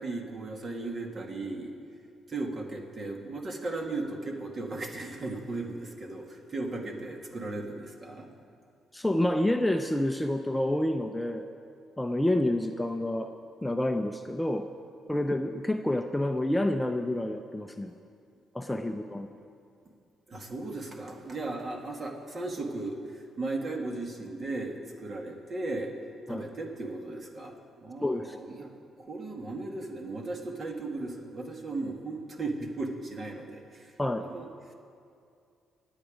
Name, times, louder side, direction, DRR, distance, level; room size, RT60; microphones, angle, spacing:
voice 1, 0.0-1.7 2.3-8.3 20.3-25.9 26.3-28.7 29.0-34.5, right 2 dB, 40° right, 2 dB, 2.1 m, -36 dB
voice 2, 8.9-11.5 12.0-13.3 13.6-14.7 15.1-17.9 18.5-19.3 26.3-26.4 28.0-28.4 34.0-34.2, left 1 dB, 10° left, 6 dB, 0.6 m, -28 dB
24.0 x 9.0 x 5.1 m, 2.4 s
cardioid pair, 90°, 0 cm